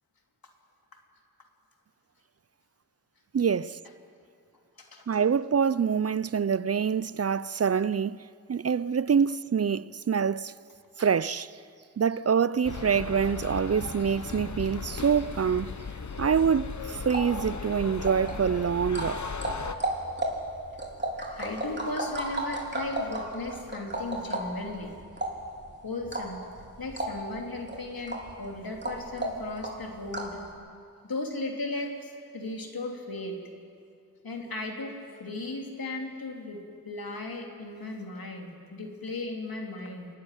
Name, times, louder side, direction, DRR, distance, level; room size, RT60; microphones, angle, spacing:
voice 1, 3.3-3.8 5.1-10.5 11.0-11.6 12.0-15.7 16.2-19.3, right 7 dB, 45° right, 0.4 m, -26 dB
sound 1, 12.6-19.8, left 5 dB, 55° left, 1.0 m, -37 dB
sound 2, 16.9-30.4, right 1 dB, 30° right, 3.5 m, -35 dB
voice 2, 21.3-25.0 25.8-26.4 26.8-30.4 31.0-33.4 34.2-40.1, left 2 dB, 80° left, 2.7 m, -36 dB
26.5 x 11.5 x 9.9 m
wide cardioid pair, 55°, 35 cm